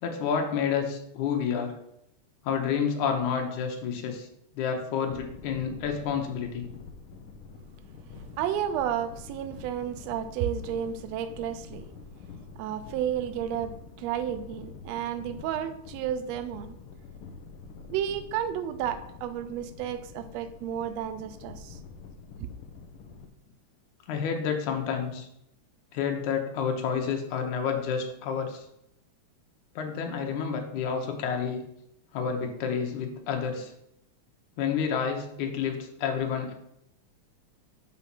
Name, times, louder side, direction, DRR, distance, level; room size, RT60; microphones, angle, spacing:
voice 1, 0.0-1.8 2.4-4.3 4.6-6.7 24.1-25.3 25.9-28.7 29.8-31.6 32.1-33.7 34.6-36.5, left 6 dB, 85° left, 3 dB, 2.4 m, -29 dB
sound 1, 5.0-23.3, left 4 dB, 65° left, 1.4 m, -46 dB
voice 2, 8.1-11.9 12.5-16.8 17.9-21.8 22.4-22.5, right 9 dB, 75° right, 10 dB, 1.6 m, -32 dB
5.6 x 4.9 x 6.0 m, 0.77 s
omnidirectional pair, 3.4 m